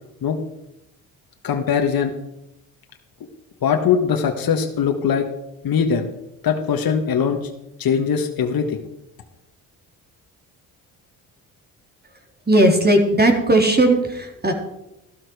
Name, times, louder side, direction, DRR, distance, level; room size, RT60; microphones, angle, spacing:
voice 1, 1.4-2.1 3.6-5.3 5.6-6.1 6.4-7.4 7.8-8.8, left 7 dB, 55° left, 4 dB, 1.5 m, -21 dB
voice 2, 12.5-14.5, right 1 dB, 20° right, 3 dB, 3.6 m, -16 dB
13.5 x 12.5 x 4.8 m, 0.88 s
supercardioid pair, 55°, 43 cm